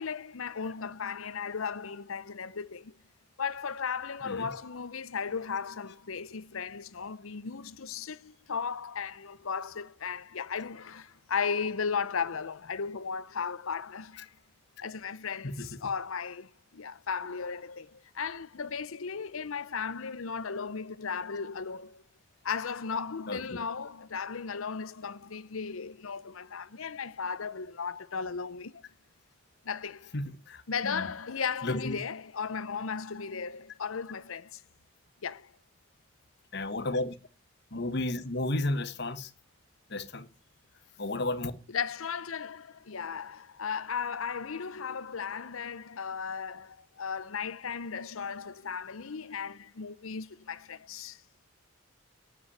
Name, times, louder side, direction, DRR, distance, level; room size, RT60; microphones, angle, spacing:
voice 1, 0.0-3.0 3.4-14.3 14.8-22.0 22.4-28.8 29.6-30.1 30.7-34.6 35.2-35.5 41.7-51.2, left 6 dB, 85° left, 0.8 m, -36 dB
voice 2, 15.4-15.8 23.3-23.4 30.1-31.1 31.6-32.0 36.5-37.1 37.7-39.3 39.9-40.3 41.0-41.5, left 2 dB, 55° left, 1.3 m, -33 dB
9.4 x 8.2 x 9.6 m
head